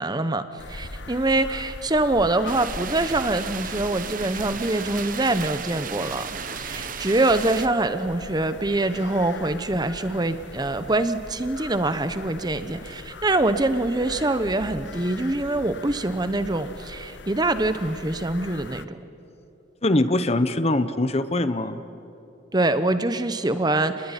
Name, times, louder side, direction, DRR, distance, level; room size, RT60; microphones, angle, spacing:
voice 1, 0.0-19.0 22.5-24.1, right 2 dB, 20° right, 11 dB, 0.9 m, -24 dB
sound 1, 0.6-18.8, left 3 dB, 70° left, 0.9 m, -41 dB
sound 2, 2.5-7.7, right 7 dB, 45° right, 1.1 m, -35 dB
voice 2, 19.8-21.8, left 1 dB, 35° left, 12 dB, 0.9 m, -22 dB
29.0 x 20.5 x 9.9 m, 2.9 s
head